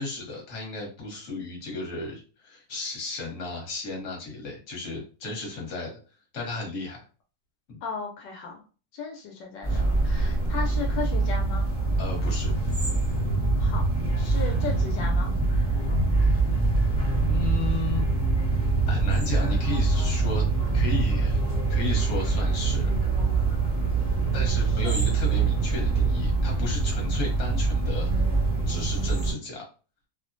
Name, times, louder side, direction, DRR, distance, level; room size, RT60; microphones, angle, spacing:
voice 1, 0.0-6.0 6.3-7.0 7.7-7.8 9.7-9.8 12.0-12.5 16.2-16.4 17.3-18.1 18.9-20.4 20.7-21.4 21.7-22.9 24.3-28.1 28.7-29.6, left 3 dB, 50° left, -1 dB, 1.3 m, -34 dB
voice 2, 7.8-8.6 8.9-11.7 13.6-13.8 14.2-15.3, left 5 dB, 80° left, 1 dB, 1.2 m, -35 dB
sound 1, 9.6-29.3, right 3 dB, 10° right, 0.7 m, -24 dB
3.0 x 2.1 x 2.5 m, 0.36 s
omnidirectional pair, 1.9 m